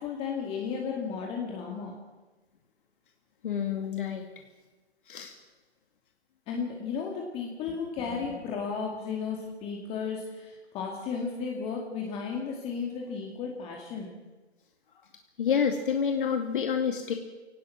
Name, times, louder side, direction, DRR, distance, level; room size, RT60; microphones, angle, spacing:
voice 1, 0.0-2.0 6.5-14.1, left 5 dB, 15° left, 0 dB, 2.4 m, -34 dB
voice 2, 3.4-4.2 5.1-5.3 15.4-17.1, left 7 dB, 50° left, 3 dB, 2.3 m, -28 dB
25.0 x 18.0 x 6.1 m, 1.2 s
figure-of-eight pair, 140°, 34 cm